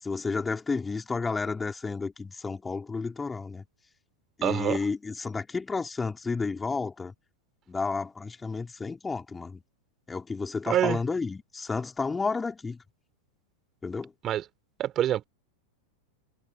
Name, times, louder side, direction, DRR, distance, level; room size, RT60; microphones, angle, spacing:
voice 1, 0.0-3.6 4.4-7.1 7.7-9.6 10.1-12.8 13.8-14.1, left 4 dB, 15° left, 4.5 m, -31 dB
voice 2, 4.4-4.8 10.7-11.0 14.2-14.5 14.8-15.2, right 11 dB, 30° right, 4.0 m, -26 dB
figure-of-eight pair, 90°, 0 cm